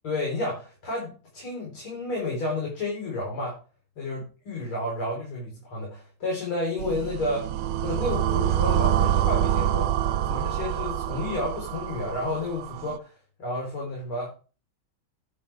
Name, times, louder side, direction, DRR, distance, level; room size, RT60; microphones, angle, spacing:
voice 1, 0.0-3.6 4.0-7.5 7.8-9.9 10.2-14.3, left 2 dB, 90° left, -3 dB, 4.9 m, -31 dB
sound 1, 6.8-13.0, right 11 dB, 90° right, 1.6 m, -26 dB
10.5 x 8.6 x 3.4 m, 0.34 s
omnidirectional pair, 2.2 m